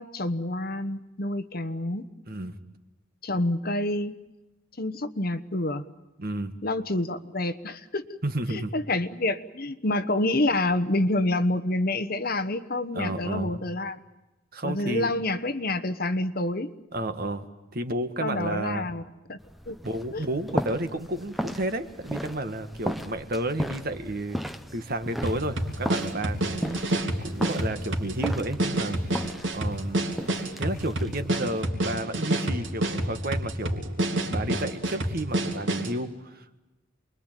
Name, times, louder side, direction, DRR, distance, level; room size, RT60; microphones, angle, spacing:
voice 1, 0.0-2.1 3.2-4.2 4.8-5.8 6.6-8.2 8.5-14.0 14.6-16.7 18.2-19.0 19.3-19.4 19.7-19.8 20.1-20.2, left 2 dB, 45° left, 12 dB, 1.2 m, -28 dB
voice 2, 2.3-2.6 6.2-6.5 8.2-8.7 12.9-13.6 14.5-15.1 16.9-18.9 19.8-24.4 24.7-29.0 29.5-30.1 30.6-36.6, right 1 dB, 45° right, 9 dB, 1.7 m, -32 dB
sound 1, 19.4-31.6, equal, ahead, 0.9 m, -36 dB
sound 2, 25.2-36.0, right 1 dB, 60° right, 3.3 m, -28 dB
28.5 x 22.5 x 9.1 m, 1.0 s
head